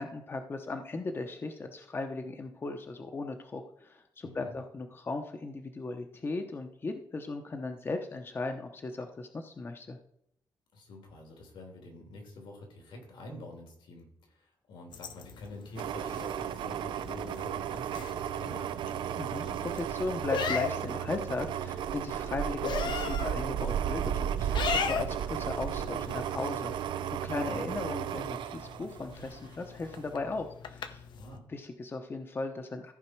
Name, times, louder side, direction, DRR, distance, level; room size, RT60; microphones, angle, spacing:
voice 1, 0.0-10.0 19.2-26.7 27.1-31.0 31.5-32.9, left 3 dB, 30° left, 6 dB, 0.8 m, -37 dB
voice 2, 4.2-4.5 10.7-18.9 27.2-27.6 31.1-31.4, left 1 dB, 85° left, 1 dB, 3.2 m, -47 dB
sound 1, 14.9-31.4, left 6 dB, 70° left, 0.8 m, -39 dB
sound 2, 15.8-29.5 29.9-30.0, right 10 dB, 85° right, 0.4 m, -34 dB
14.5 x 5.0 x 4.5 m, 0.72 s
cardioid pair, 130°, 8 cm